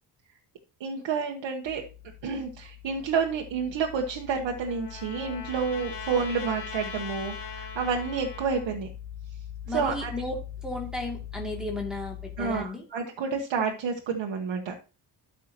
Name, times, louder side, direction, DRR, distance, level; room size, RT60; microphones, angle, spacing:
voice 1, 0.8-1.8 2.2-8.9 9.7-10.1 12.4-14.8, right 5 dB, 80° right, 1 dB, 1.4 m, -29 dB
sound 1, 1.7-12.6, left 11 dB, 30° left, 2.3 m, -42 dB
Trumpet, 4.0-8.7, left 4 dB, 85° left, 3.0 m, -41 dB
voice 2, 9.7-12.9, left 2 dB, ahead, -2 dB, 2.7 m, -34 dB
12.5 x 6.0 x 3.0 m, 0.34 s
cardioid pair, 135°, 43 cm